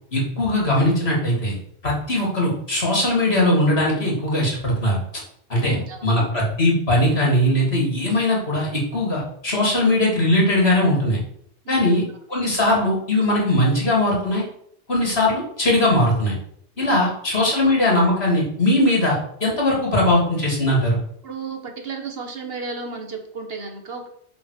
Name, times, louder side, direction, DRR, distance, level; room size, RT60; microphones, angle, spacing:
voice 1, 0.1-1.5 1.8-5.0 5.5-5.8 6.0-11.2 11.7-14.4 14.9-16.3 16.8-21.0, left 1 dB, 70° left, -3 dB, 3.1 m, -20 dB
voice 2, 5.5-6.3 11.6-12.1 16.8-17.2 17.5-17.6 21.2-24.1, right 4 dB, 65° right, 4 dB, 1.5 m, -34 dB
7.1 x 4.0 x 6.6 m, 0.68 s
omnidirectional pair, 1.1 m